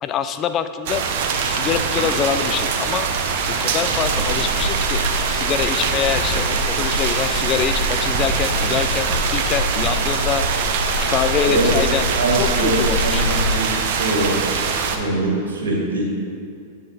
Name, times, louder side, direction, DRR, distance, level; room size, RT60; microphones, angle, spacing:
voice 1, 0.0-1.0 1.4-3.1 3.5-5.0 5.3-10.4 11.1-12.0 12.3-13.4, left 8 dB, 35° left, 10 dB, 0.3 m, -25 dB
Drum kit / Drum, 0.9-1.0 1.3-2.6 3.0-3.2 3.5-4.8 5.2-9.5, right 1 dB, 35° right, 1.7 m, -34 dB
sound 1, 0.9-15.0, right 5 dB, 60° right, 0.6 m, -23 dB
sound 2, 4.0-13.6, left 1 dB, 80° left, 0.8 m, -26 dB
voice 2, 12.1-13.7 14.0-14.4 14.9-16.1, right 2 dB, 80° right, -2 dB, 1.6 m, -22 dB
8.3 x 3.9 x 4.0 m, 2.4 s
hypercardioid pair, 115°, 0 cm